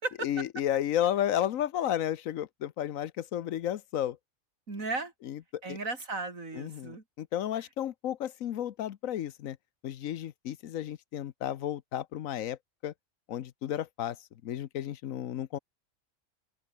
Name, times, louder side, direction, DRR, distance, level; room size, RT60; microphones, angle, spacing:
voice 1, 0.2-4.2 5.3-5.4 5.7-5.8 6.5-9.6 9.8-12.6 12.8-12.9 13.3-14.2 14.4-15.6, left 11 dB, 80° left, 1.2 m, -32 dB
voice 2, 4.7-5.1 5.6-7.0, right 3 dB, 85° right, 4.2 m, -35 dB
open air
omnidirectional pair, 1.4 m